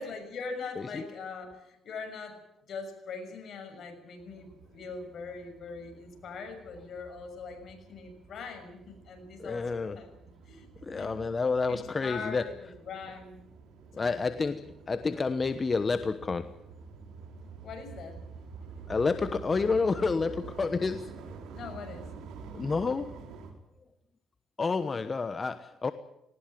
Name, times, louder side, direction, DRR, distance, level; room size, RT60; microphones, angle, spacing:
voice 1, 0.0-2.4 2.7-10.1 10.4-10.7 10.9-11.1 11.7-13.5 14.0-14.2 17.6-18.2 21.5-22.1, left 4 dB, 60° left, 5 dB, 6.5 m, -42 dB
voice 2, 0.8-1.1 9.4-10.0 10.8-12.5 13.9-16.5 18.9-21.1 22.5-23.1 24.6-25.9, left 4 dB, 30° left, 11 dB, 1.1 m, -29 dB
sound 1, 4.2-23.5, right 5 dB, 85° right, 4.5 m, -48 dB
19.5 x 19.0 x 9.2 m, 0.90 s
cardioid pair, 90°, 0 cm